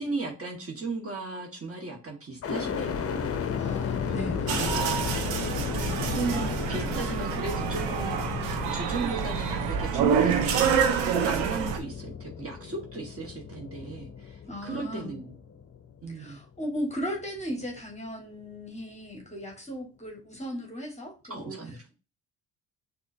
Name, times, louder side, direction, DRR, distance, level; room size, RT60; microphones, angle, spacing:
voice 1, 0.0-3.6 4.0-5.4 6.0-8.4 8.7-15.3 16.0-16.4 21.3-21.9, right 3 dB, 30° right, 1.7 m, -36 dB
sound 1, 2.4-16.4 16.9-17.7, left 7 dB, 35° left, 0.7 m, -34 dB
voice 2, 3.5-5.2 14.5-15.2 16.1-21.6, left 1 dB, 15° left, 1.7 m, -37 dB
sound 2, 4.5-11.8, right 7 dB, 80° right, 0.9 m, -27 dB
6.2 x 2.9 x 2.7 m
supercardioid pair, 65°, 42 cm